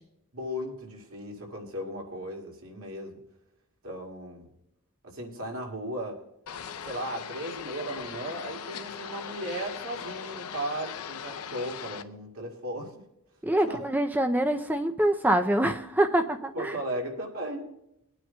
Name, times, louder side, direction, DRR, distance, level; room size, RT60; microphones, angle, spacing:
voice 1, 0.3-3.2 3.8-4.5 5.0-6.2 6.9-12.9 13.6-13.8 16.5-17.7, right 1 dB, 70° right, 0 dB, 2.2 m, -36 dB
sound 1, 6.5-12.0, left 7 dB, 80° left, 0.6 m, -39 dB
voice 2, 13.4-16.7, right 1 dB, 10° right, 7 dB, 0.4 m, -25 dB
22.0 x 9.3 x 2.2 m, 0.81 s
head